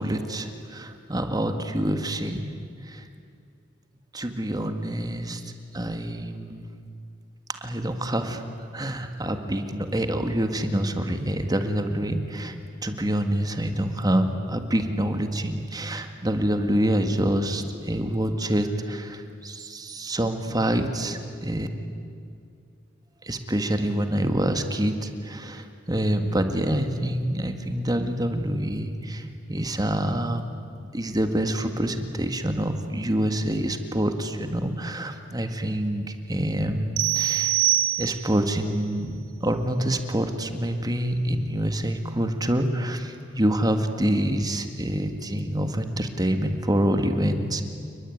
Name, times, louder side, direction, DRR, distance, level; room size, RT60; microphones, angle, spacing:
voice 1, 0.0-2.5 2.8-3.0 4.1-6.6 7.5-8.4 8.7-12.5 12.8-21.7 23.2-30.4 30.9-37.6 38.0-47.6, right 1 dB, 20° right, 7 dB, 1.8 m, -26 dB
sound 1, 37.0-38.5, right 14 dB, 85° right, 1.6 m, -24 dB
30.0 x 21.0 x 9.4 m, 2.4 s
head